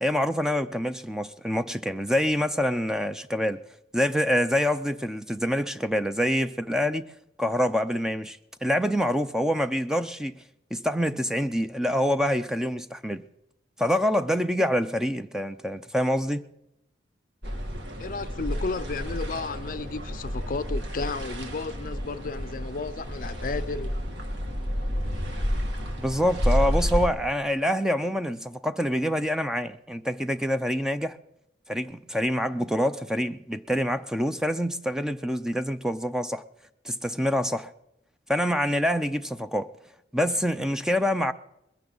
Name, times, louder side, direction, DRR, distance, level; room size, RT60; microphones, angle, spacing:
voice 1, 0.0-3.6 3.9-7.0 7.4-10.4 10.7-13.2 13.8-16.4 26.0-31.2 31.7-36.4 36.8-37.7 38.3-39.7 40.1-41.3, equal, 5° right, 0.5 m, -26 dB
sound 1, 17.4-27.1, equal, 85° right, 2.2 m, -30 dB
voice 2, 18.0-24.0, left 3 dB, 50° left, 0.5 m, -33 dB
21.0 x 15.5 x 4.0 m
head